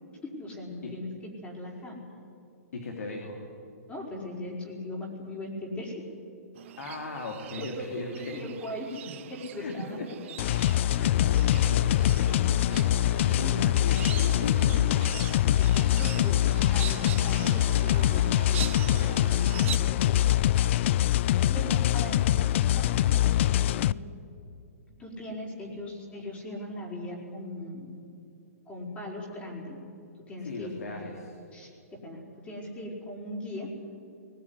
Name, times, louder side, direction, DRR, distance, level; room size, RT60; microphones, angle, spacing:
voice 1, 0.2-2.0 3.9-6.1 7.6-9.0 9.3-10.0 13.3-13.7 15.5-20.3 21.4-24.0 25.0-27.9 28.7-29.8 30.1-31.0 31.5-33.8, left 1 dB, 15° left, -2 dB, 5.1 m, -39 dB
voice 2, 2.7-3.4 6.8-8.4 9.6-10.3 11.0-12.5 12.8-15.1 30.4-31.3, left 3 dB, 75° left, 2 dB, 3.2 m, -38 dB
sound 1, 6.6-19.8, right 11 dB, 50° right, 0.9 m, -42 dB
sound 2, 10.4-23.9, left 12 dB, 50° left, 0.4 m, -24 dB
20.0 x 18.5 x 9.9 m, 2.6 s
hypercardioid pair, 145°, 8 cm